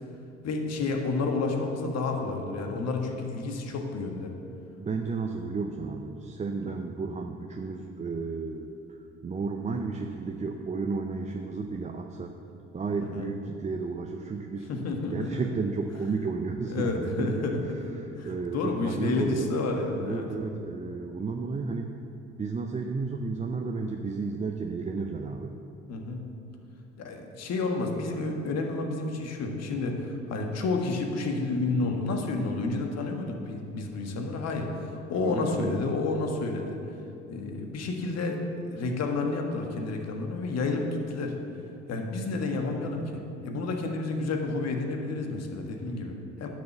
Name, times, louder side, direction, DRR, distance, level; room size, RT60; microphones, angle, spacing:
voice 1, 0.4-4.3 6.6-6.7 13.0-13.3 14.7-15.3 16.7-17.8 18.2-20.3 25.9-26.2 27.0-36.8 37.3-38.4 38.7-41.3 41.9-46.5, left 3 dB, 50° left, 3 dB, 1.5 m, -30 dB
voice 2, 4.8-8.7 9.2-12.3 12.7-14.7 15.1-17.4 18.0-19.6 20.0-21.9 22.4-25.5 35.2-35.8, right 4 dB, 20° right, 3 dB, 0.7 m, -32 dB
10.5 x 6.4 x 7.0 m, 2.7 s
figure-of-eight pair, 50°, 34 cm